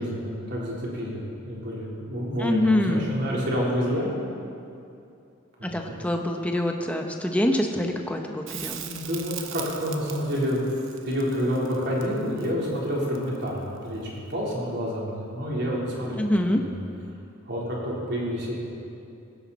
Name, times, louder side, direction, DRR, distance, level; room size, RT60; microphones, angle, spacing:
voice 1, 0.0-4.1 5.6-6.0 8.8-10.8 11.0-16.2 16.5-16.7 17.5-18.6, equal, 55° right, -5 dB, 3.9 m, -28 dB
voice 2, 2.4-3.1 5.7-8.8 16.1-16.6, left 1 dB, 5° left, 2 dB, 1.0 m, -25 dB
Crackle, 8.5-13.6 16.3-16.4, right 9 dB, 70° right, 1.1 m, -40 dB
19.0 x 15.5 x 4.3 m, 2.6 s
head